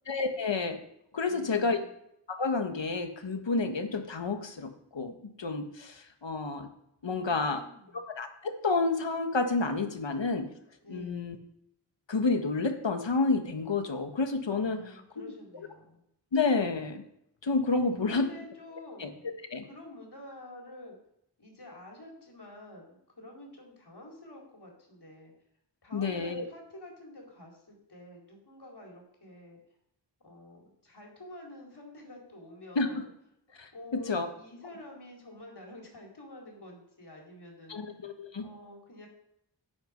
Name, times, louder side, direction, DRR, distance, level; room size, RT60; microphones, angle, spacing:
voice 1, 0.1-0.8 1.1-1.8 2.4-6.7 7.0-7.6 8.0-10.5 10.9-11.4 12.1-15.0 16.3-17.0 17.4-18.3 19.0-19.1 19.5-19.6 25.9-26.4 32.7-32.9 33.6-34.3 37.7-38.5, left 3 dB, 75° left, 6 dB, 1.5 m, -30 dB
voice 2, 1.2-1.9 7.0-8.0 10.8-11.5 14.6-16.0 17.8-21.0 21.4-25.3 25.8-29.6 30.2-33.1 33.7-38.1 38.4-39.1, left 1 dB, 60° left, -1 dB, 4.3 m, -49 dB
11.5 x 9.2 x 5.2 m, 0.76 s
wide cardioid pair, 45°, 44 cm